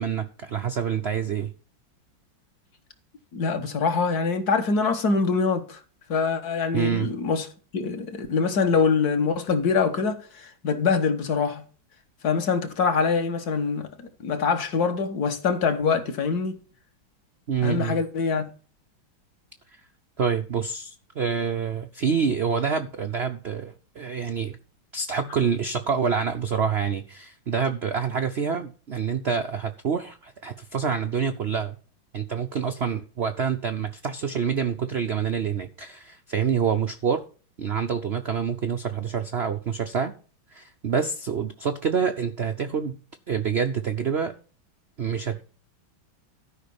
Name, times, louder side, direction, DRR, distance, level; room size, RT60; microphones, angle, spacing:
voice 1, 0.0-1.5 6.7-7.1 17.5-18.0 20.2-24.6 24.9-31.8 32.1-37.2 37.6-40.1 40.5-43.0 43.3-44.3 45.0-45.4, right 6 dB, 75° right, 0.5 m, -27 dB
voice 2, 3.3-5.8 6.1-7.5 7.7-11.6 12.2-16.6 17.6-18.5, left 5 dB, 55° left, 1.7 m, -24 dB
12.5 x 5.3 x 7.0 m
omnidirectional pair, 2.2 m